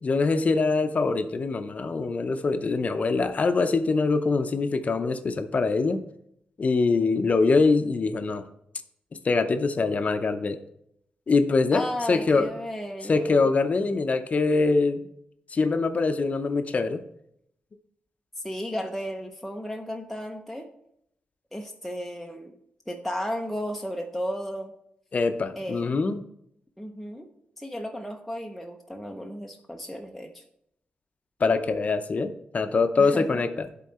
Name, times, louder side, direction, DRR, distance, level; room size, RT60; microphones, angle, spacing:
voice 1, 0.0-6.0 6.6-8.4 9.2-10.6 11.3-12.5 13.1-15.0 15.5-17.0 25.1-26.2 31.4-33.7, left 4 dB, 45° left, 9 dB, 0.6 m, -24 dB
voice 2, 11.7-13.5 18.4-20.7 21.5-22.6 22.9-24.7 25.6-25.9 26.8-27.3 27.6-30.4 33.0-33.4, equal, ahead, 1 dB, 0.6 m, -34 dB
11.0 x 3.8 x 4.3 m, 0.75 s
cardioid pair, 95°, 4 cm